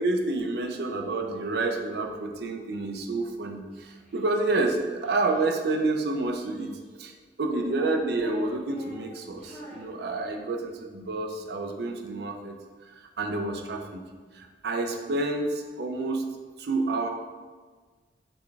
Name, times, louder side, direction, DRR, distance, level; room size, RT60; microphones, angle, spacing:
voice 1, 0.0-6.7 7.0-7.1 7.4-12.6 12.8-12.9 13.2-14.0 14.3-16.3 16.6-17.1, right 2 dB, 65° right, 3 dB, 0.5 m, -29 dB
Child speech kid speaking, 3.7-5.4 6.2-7.0 7.5-10.6, equal, 5° left, 1.0 m, -48 dB
4.2 x 3.4 x 3.3 m, 1.4 s
head